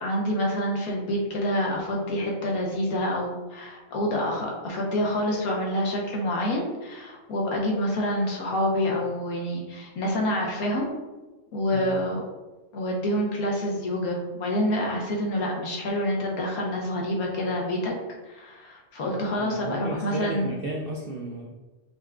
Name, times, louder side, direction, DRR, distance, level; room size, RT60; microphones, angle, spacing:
voice 1, 0.0-10.9 11.5-12.2 12.7-17.9 18.3-20.6, equal, 80° left, -1 dB, 1.5 m, -27 dB
voice 2, 19.4-21.5, right 2 dB, 70° right, 0 dB, 0.5 m, -34 dB
5.7 x 2.4 x 3.5 m, 1.1 s
omnidirectional pair, 1.5 m